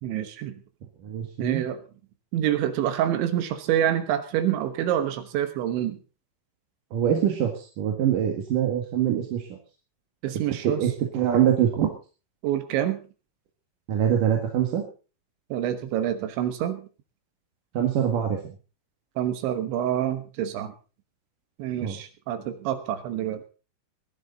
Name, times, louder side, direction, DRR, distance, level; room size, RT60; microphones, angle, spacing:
voice 1, 0.0-0.6 1.4-1.8 2.3-6.0 10.2-10.9 12.4-13.0 15.5-16.9 19.2-20.7 21.6-23.4, right 11 dB, 75° right, 10 dB, 3.3 m, -27 dB
voice 2, 1.0-1.6 6.9-9.4 10.6-11.9 13.9-14.9 17.7-18.4 21.8-22.0, right 9 dB, 55° right, 2 dB, 2.7 m, -24 dB
20.5 x 11.0 x 4.0 m, 0.35 s
omnidirectional pair, 5.7 m